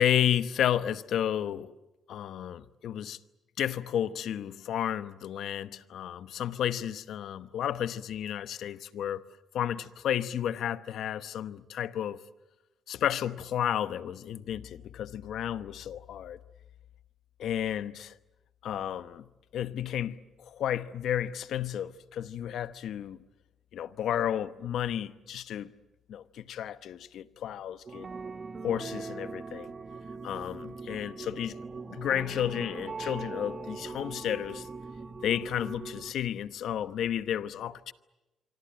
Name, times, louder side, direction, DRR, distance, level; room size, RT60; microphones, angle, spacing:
voice 1, 0.0-1.7 2.1-3.2 3.6-9.2 9.5-12.2 12.9-16.4 17.4-18.1 18.6-19.3 19.5-23.2 23.7-25.7 26.1-28.1 28.6-29.7 30.2-31.6 31.8-34.7 35.2-37.9, left 10 dB, 75° left, 1.0 m, -32 dB
sound 1, 27.9-36.1, right 4 dB, 35° right, 1.4 m, -41 dB
26.0 x 25.0 x 9.0 m
cardioid pair, 90°, 0 cm